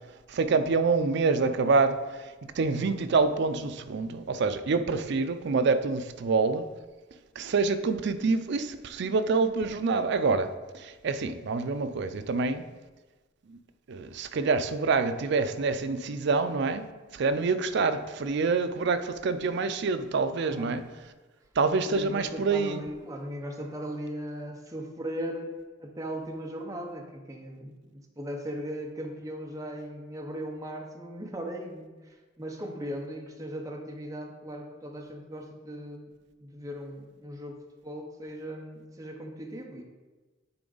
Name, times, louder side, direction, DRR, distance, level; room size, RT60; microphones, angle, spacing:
voice 1, 0.3-6.7 7.4-10.5 10.7-12.6 13.5-13.6 13.9-16.8 17.1-20.8 21.6-22.8, right 4 dB, 60° right, 10 dB, 0.4 m, -26 dB
voice 2, 20.5-20.8 21.9-25.5 25.8-36.1 36.4-37.6 37.8-39.8, equal, 15° right, 1 dB, 0.7 m, -38 dB
9.5 x 3.8 x 3.9 m, 1.2 s
head